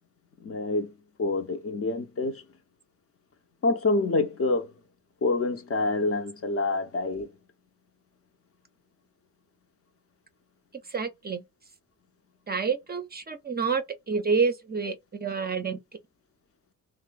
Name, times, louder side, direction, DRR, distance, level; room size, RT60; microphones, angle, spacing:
voice 1, 0.4-0.9 1.2-2.4 3.6-4.7 5.2-7.3, left 3 dB, 40° left, 0.5 m, -27 dB
voice 2, 10.9-11.4 12.5-15.8, right 5 dB, 25° right, 0.5 m, -28 dB
3.0 x 2.0 x 2.2 m
supercardioid pair, 50°, 38 cm